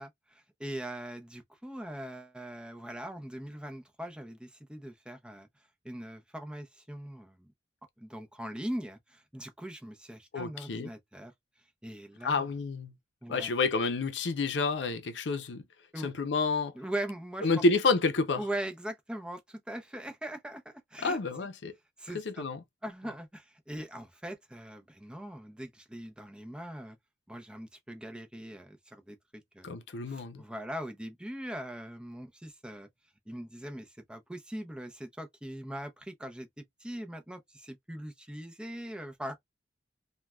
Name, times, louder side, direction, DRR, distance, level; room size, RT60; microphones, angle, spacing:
voice 1, 0.0-5.5 5.8-7.5 8.0-11.3 11.8-12.5 13.2-13.5 15.9-16.1 16.7-17.6 18.4-21.2 22.0-22.5 22.8-27.0 27.3-29.8 30.1-32.9 33.3-39.4, right 1 dB, 5° right, 0.6 m, -41 dB
voice 2, 10.3-10.9 12.2-12.9 13.3-15.6 16.0-16.7 17.4-18.4 21.0-21.7 22.1-22.6 29.6-30.4, left 3 dB, 85° left, 0.6 m, -29 dB
3.2 x 2.2 x 2.3 m
head